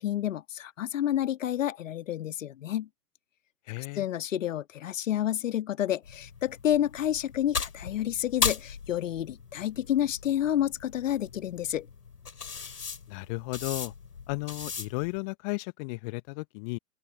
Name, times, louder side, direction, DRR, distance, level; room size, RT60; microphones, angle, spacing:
voice 1, 0.0-2.9 3.8-11.9, left 11 dB, 50° left, 1.8 m, -29 dB
voice 2, 3.7-4.0 13.1-13.9 14.3-16.8, left 30 dB, 25° left, 1.1 m, -34 dB
sound 1, 6.0-15.2, left 6 dB, 65° left, 4.0 m, -37 dB
open air
figure-of-eight pair, 115°, 49 cm